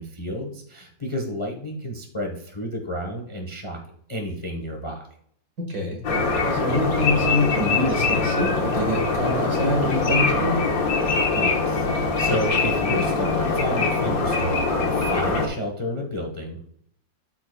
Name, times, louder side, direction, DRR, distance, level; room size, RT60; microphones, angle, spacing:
voice 1, 0.0-3.8 4.1-5.1 11.3-16.6, equal, 20° left, 1 dB, 0.8 m, -31 dB
voice 2, 5.7-6.0 6.4-10.6, left 1 dB, 50° right, 1 dB, 2.1 m, -25 dB
sound 1, 6.0-15.5, left 3 dB, 55° left, 1.4 m, -23 dB
12.5 x 4.8 x 2.3 m, 0.65 s
omnidirectional pair, 2.1 m